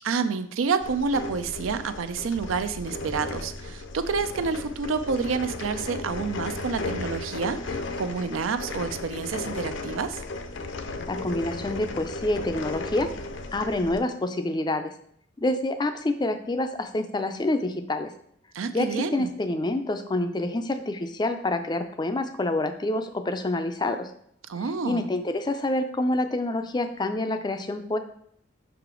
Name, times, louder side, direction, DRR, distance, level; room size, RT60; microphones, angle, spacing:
voice 1, 0.0-10.2 18.5-19.3 24.5-25.1, right 5 dB, 85° right, 11 dB, 0.5 m, -28 dB
sound 1, 0.8-14.0, left 2 dB, 70° left, 0.6 m, -35 dB
voice 2, 11.1-13.1 13.5-14.9 15.4-18.1 18.7-24.1 24.8-28.0, left 2 dB, 20° left, 8 dB, 0.4 m, -27 dB
5.7 x 4.9 x 3.7 m, 0.68 s
head